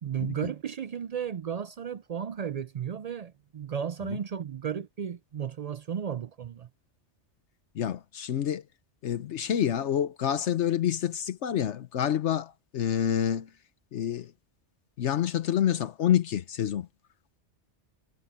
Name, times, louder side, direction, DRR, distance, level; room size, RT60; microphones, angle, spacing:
voice 1, 0.0-6.7, right 8 dB, 65° right, 0.3 m, -34 dB
voice 2, 7.7-8.6 9.0-13.5 13.9-14.3 15.0-16.9, left 10 dB, 75° left, 1.1 m, -27 dB
omnidirectional pair, 1.2 m